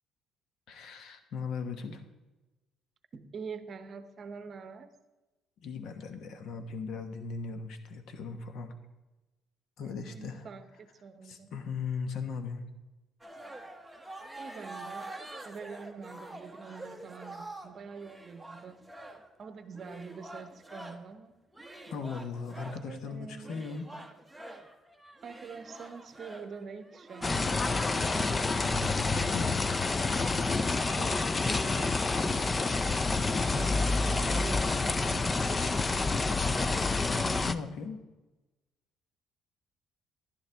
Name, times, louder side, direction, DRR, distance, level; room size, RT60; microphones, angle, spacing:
voice 1, 0.7-2.0 5.6-8.7 9.8-10.5 11.2-12.7 21.9-23.9 28.5-29.6 33.5-33.6 37.1-38.0, left 5 dB, 65° left, 7 dB, 1.2 m, -38 dB
voice 2, 3.1-4.9 9.8-11.5 14.4-15.2 15.4-18.8 19.1-21.3 22.8-23.6 25.2-27.8 30.9-32.7 33.4-35.5, right 5 dB, 40° right, 11 dB, 0.8 m, -45 dB
sound 1, 13.2-21.1 21.5-22.9 23.4-28.5, right 1 dB, 5° right, 0.8 m, -46 dB
sound 2, 27.2-37.5, left 3 dB, 20° left, 0.4 m, -28 dB
11.5 x 11.0 x 3.5 m, 1.1 s
cardioid pair, 135°, 0 cm